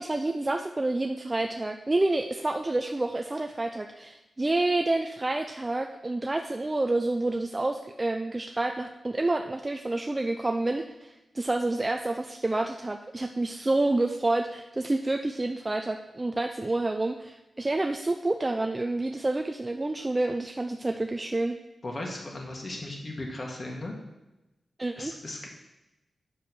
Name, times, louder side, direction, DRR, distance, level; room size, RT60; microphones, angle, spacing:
voice 1, 0.0-21.6 24.8-25.1, right 2 dB, 25° right, 4 dB, 0.5 m, -28 dB
voice 2, 21.8-23.9 25.0-25.5, left 2 dB, 40° left, 0 dB, 2.0 m, -37 dB
8.4 x 5.0 x 6.2 m, 0.98 s
wide cardioid pair, 90°, 0 cm